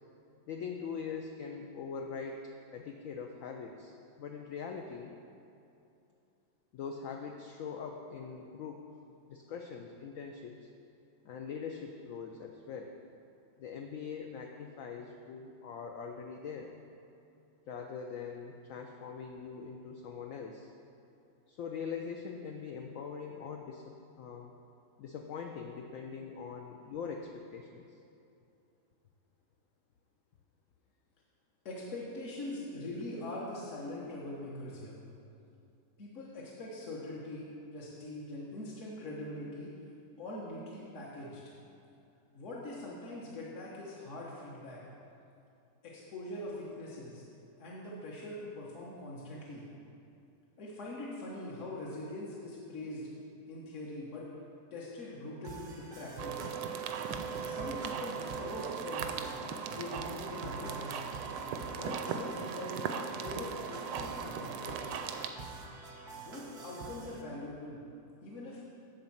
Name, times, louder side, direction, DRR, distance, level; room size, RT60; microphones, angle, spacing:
voice 1, 0.5-5.1 6.7-8.9 9.3-10.7 11.2-12.9 13.6-16.7 17.7-20.7 21.5-24.5 25.0-28.0, left 6 dB, 75° left, 3 dB, 0.7 m, -42 dB
voice 2, 31.6-35.0 36.0-37.5 37.7-39.7 40.2-41.4 42.3-44.8 45.8-47.2 47.6-49.6 50.6-53.1 53.5-54.3 54.7-56.4 57.4-59.2 59.6-61.0 61.8-62.8 63.1-64.8 66.1-67.8 68.2-68.6, left 1 dB, 50° left, -5 dB, 1.2 m, -42 dB
sound 1, 55.4-67.2, right 4 dB, 50° right, 0.5 m, -47 dB
sound 2, 56.2-65.3, right 6 dB, 80° right, 1.2 m, -38 dB
10.5 x 3.9 x 7.2 m, 2.7 s
omnidirectional pair, 1.9 m